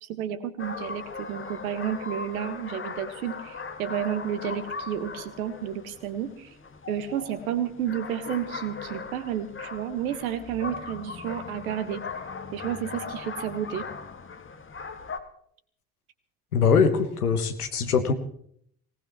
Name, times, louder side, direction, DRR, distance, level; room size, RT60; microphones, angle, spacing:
voice 1, 0.0-6.5 6.9-12.0 12.5-13.9, right 9 dB, 75° right, 12 dB, 1.6 m, -31 dB
sound 1, 0.6-15.2, left 4 dB, 30° left, 2.0 m, -39 dB
voice 2, 16.5-18.1, left 6 dB, 85° left, 8 dB, 1.5 m, -22 dB
24.0 x 19.0 x 3.1 m, 0.65 s
figure-of-eight pair, 50°, 43 cm